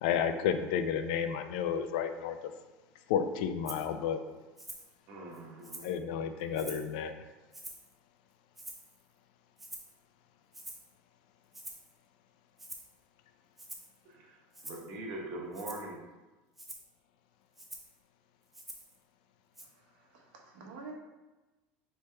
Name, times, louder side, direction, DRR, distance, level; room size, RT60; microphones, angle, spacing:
voice 1, 0.0-2.5 3.1-4.2 5.8-7.1, left 8 dB, 75° left, 9 dB, 0.4 m, -31 dB
Rattle (instrument), 3.7-3.9 4.6-4.9 5.3-6.0 6.5-6.9 7.5-7.9 8.6-9.0 9.6-10.0 10.5-10.9 11.5-11.9 12.6-12.9 13.6-14.0 14.5-14.9 15.5-15.9 16.6-16.9 17.6-17.9 18.5-19.0 19.6-19.7, right 1 dB, 5° right, 0.3 m, -46 dB
voice 2, 5.1-5.8 14.0-16.0, right 2 dB, 45° right, -1 dB, 0.9 m, -42 dB
voice 3, 19.6-20.9, right 4 dB, 85° right, 0 dB, 1.0 m, -49 dB
4.2 x 3.4 x 3.3 m, 1.2 s
cardioid pair, 175°, 4 cm